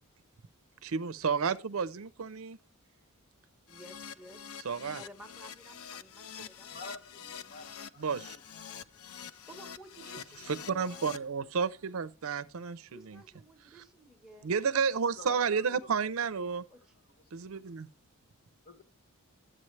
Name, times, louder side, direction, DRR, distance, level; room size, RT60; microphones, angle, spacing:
voice 1, 0.8-2.6 4.6-5.0 8.0-8.4 10.7-13.2 14.4-16.6 17.3-17.9, right 6 dB, 70° right, 0.5 m, -31 dB
Keyboard (musical), 3.7-11.2, left 8 dB, 75° left, 0.5 m, -46 dB
voice 2, 3.7-4.5 4.9-7.7 9.5-11.2 12.9-14.5 16.7-16.9, right 1 dB, 5° right, 1.2 m, -54 dB
voice 3, 6.7-8.4 15.2-15.9 16.6-16.8 18.7-18.8, left 2 dB, 45° left, 1.0 m, -48 dB
12.0 x 7.8 x 3.2 m
head